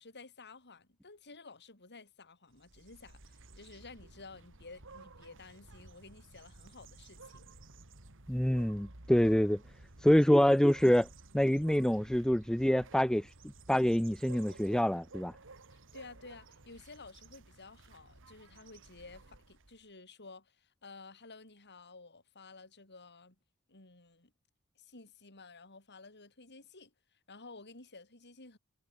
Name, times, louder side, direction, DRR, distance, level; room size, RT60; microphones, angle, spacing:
voice 1, 0.0-7.5 15.7-23.4 23.7-24.3 24.8-28.6, left 3 dB, 50° left, 5.8 m, -53 dB
sound 1, 2.5-19.8, right 3 dB, 60° right, 2.9 m, -55 dB
voice 2, 8.3-9.6 10.0-11.1 11.3-13.3 13.7-15.3, equal, 5° left, 0.5 m, -26 dB
head